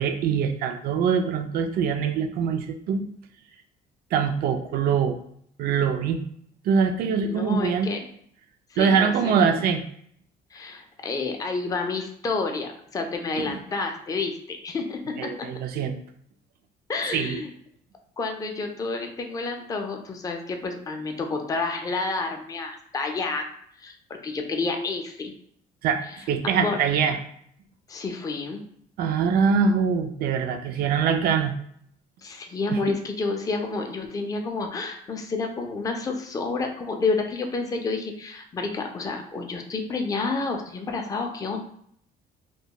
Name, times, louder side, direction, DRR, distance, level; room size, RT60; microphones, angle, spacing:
voice 1, 0.0-3.1 4.1-5.2 5.6-6.2 6.6-7.9 8.8-9.8 13.4-13.6 15.2-16.0 17.1-17.4 25.8-27.2 29.0-31.5 32.7-32.8, right 6 dB, 65° right, 6 dB, 0.4 m, -23 dB
voice 2, 7.0-8.0 8.7-9.5 10.5-15.3 16.9-17.5 18.2-23.5 23.8-25.3 26.4-26.8 27.9-28.6 32.2-41.6, left 3 dB, 20° left, 3 dB, 0.4 m, -29 dB
2.2 x 2.2 x 2.8 m, 0.67 s
cardioid pair, 110°, 17 cm